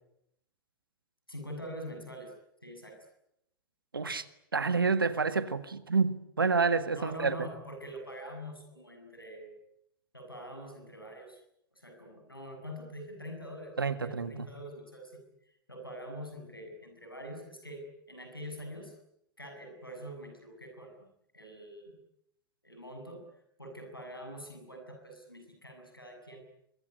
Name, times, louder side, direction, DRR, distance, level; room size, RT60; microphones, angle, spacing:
voice 1, 1.3-2.3 2.6-3.1 6.9-9.5 10.1-11.4 11.7-15.2 15.7-18.9 19.4-21.1 21.3-22.0 22.6-23.2 23.6-26.4, equal, 90° left, 7.3 m, -44 dB
voice 2, 3.9-4.3 4.5-7.5 13.8-14.5, right 4 dB, 75° right, 1.8 m, -28 dB
25.5 x 22.5 x 9.7 m
figure-of-eight pair, 95°, 12 cm